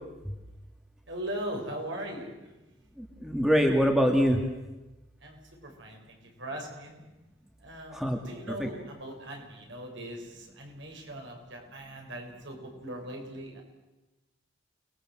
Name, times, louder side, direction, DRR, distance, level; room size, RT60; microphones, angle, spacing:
voice 1, 1.1-2.5 5.2-7.0 7.6-13.6, right 1 dB, 65° right, 1 dB, 7.0 m, -40 dB
voice 2, 3.0-4.4 7.9-8.2 8.5-8.7, equal, ahead, 2 dB, 2.4 m, -24 dB
29.5 x 20.5 x 7.9 m, 1.1 s
head